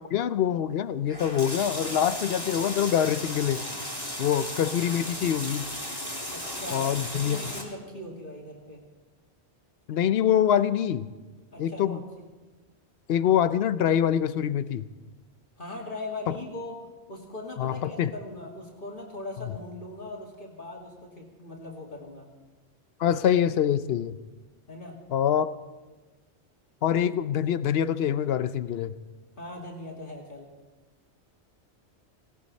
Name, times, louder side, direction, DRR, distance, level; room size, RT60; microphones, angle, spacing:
voice 1, 0.1-3.6 4.2-5.7 6.7-7.4 9.9-11.1 11.6-12.0 13.1-14.9 16.3-16.4 17.6-18.1 23.0-24.2 25.1-25.5 26.8-29.0, left 9 dB, 65° left, 14 dB, 0.9 m, -25 dB
sound 1, 1.1-7.6, left 1 dB, 20° left, 2.8 m, -35 dB
voice 2, 6.3-6.9 7.2-8.8 11.5-12.3 15.6-16.7 17.1-22.3 24.7-25.0 29.4-30.5, left 2 dB, 50° left, -2 dB, 2.7 m, -40 dB
18.5 x 18.0 x 4.2 m, 1.2 s
omnidirectional pair, 1.1 m